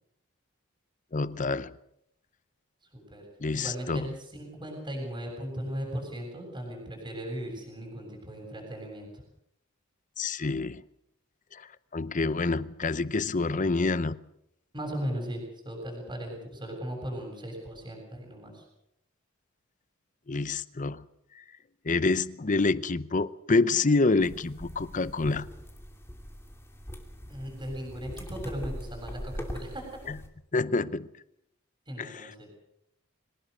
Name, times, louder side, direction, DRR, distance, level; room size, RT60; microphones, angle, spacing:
voice 1, 1.1-1.7 3.4-4.1 10.2-10.8 11.5-11.7 11.9-14.2 20.3-21.1 21.8-25.5 30.1-30.2 30.5-31.1 32.0-32.2, left 3 dB, 40° left, 0.7 m, -27 dB
voice 2, 2.9-9.2 14.7-18.6 27.3-30.0 31.9-32.5, equal, 20° right, 7.2 m, -37 dB
sound 1, 24.2-30.3, equal, 10° left, 2.7 m, -41 dB
24.0 x 18.5 x 6.7 m
head